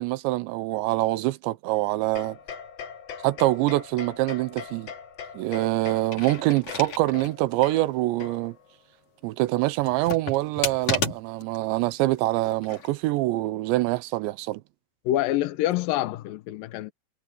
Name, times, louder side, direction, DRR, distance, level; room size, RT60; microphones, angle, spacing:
voice 1, 0.0-2.4 3.2-4.9 5.3-8.6 9.2-14.6, right 18 dB, 85° right, 3.0 m, -25 dB
sound 1, 2.1-8.7, left 7 dB, 60° left, 1.7 m, -41 dB
sound 2, 6.0-7.4 7.8-7.9 9.8-11.6 12.5-12.9, left 5 dB, 40° left, 3.8 m, -32 dB
voice 2, 15.1-16.9, left 14 dB, 80° left, 2.0 m, -26 dB
omnidirectional pair, 5.2 m